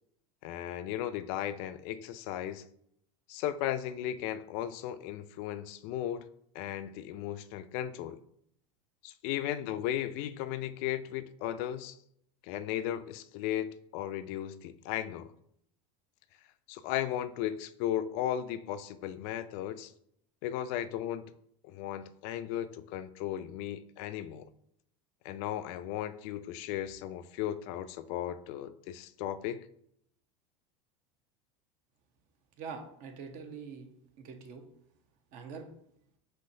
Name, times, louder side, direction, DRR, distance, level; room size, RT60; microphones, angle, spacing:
voice 1, 0.4-2.7 3.3-6.3 6.5-8.2 9.0-12.0 12.4-15.3 16.7-19.9 20.4-21.3 21.6-24.4 25.2-29.7, left 11 dB, 60° left, 13 dB, 0.4 m, -36 dB
voice 2, 32.6-33.9 34.2-34.6 35.3-35.7, right 5 dB, 55° right, 5 dB, 0.8 m, -44 dB
5.6 x 2.9 x 2.7 m, 0.70 s
supercardioid pair, 115°, 17 cm